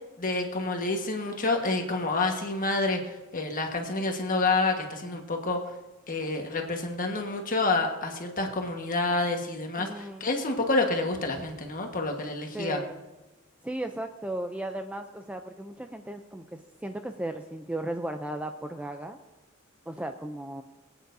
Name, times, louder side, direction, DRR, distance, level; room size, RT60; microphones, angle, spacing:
voice 1, 0.2-5.6 6.1-12.8, left 3 dB, 40° left, 3 dB, 1.4 m, -28 dB
voice 2, 9.8-10.3 12.5-12.9 13.6-19.2 19.9-20.6, right 1 dB, 5° right, 6 dB, 0.4 m, -36 dB
22.0 x 9.0 x 2.7 m, 1.1 s
head